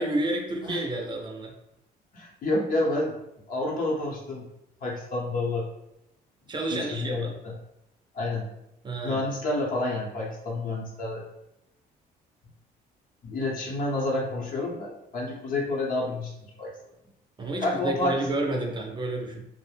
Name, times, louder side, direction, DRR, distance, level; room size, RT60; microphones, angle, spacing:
voice 1, 0.0-1.5 6.4-7.4 8.8-9.2 17.4-19.5, right 1 dB, 25° right, 1 dB, 0.4 m, -30 dB
voice 2, 2.1-3.1 3.5-4.5 4.8-5.7 6.7-7.5 8.1-8.5 9.0-11.2 13.2-16.3 16.6-16.7 17.6-18.3, left 2 dB, 55° left, -2 dB, 0.8 m, -29 dB
2.4 x 2.0 x 3.2 m, 0.83 s
cardioid pair, 110°, 17 cm